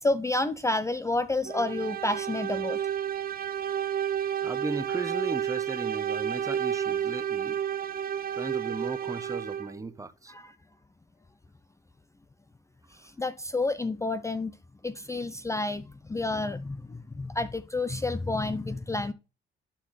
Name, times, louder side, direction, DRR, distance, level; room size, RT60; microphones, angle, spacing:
voice 1, 0.0-2.8 10.3-10.5 12.9-14.5 14.8-19.1, left 2 dB, 15° left, 0.5 m, -30 dB
sound 1, 1.5-9.8, right 9 dB, 45° right, 0.7 m, -31 dB
voice 2, 4.4-7.6 8.3-10.3, right 3 dB, 15° right, 0.8 m, -36 dB
11.0 x 4.6 x 3.2 m
cardioid pair, 90°, 20 cm